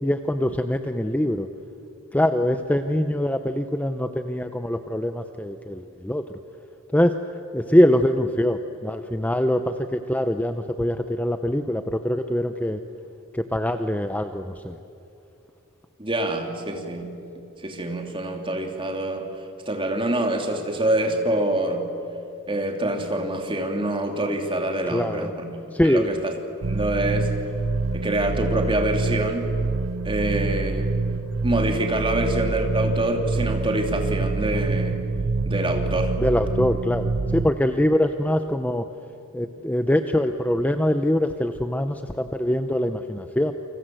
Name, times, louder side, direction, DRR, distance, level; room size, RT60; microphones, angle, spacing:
voice 1, 0.0-1.5 2.1-6.2 6.9-7.2 7.5-12.8 13.3-14.8 24.9-25.3 25.7-26.1 36.2-38.9 39.3-43.5, left 1 dB, 5° left, 8 dB, 0.7 m, -23 dB
voice 2, 16.0-17.1 17.6-19.3 19.7-21.9 22.5-26.3 26.6-27.3 27.9-29.5 30.0-30.9 31.4-35.0 35.4-36.1, right 1 dB, 25° right, 3 dB, 3.0 m, -25 dB
sound 1, 26.6-37.5, right 3 dB, 70° right, 0.7 m, -26 dB
29.0 x 25.5 x 7.8 m, 2.7 s
head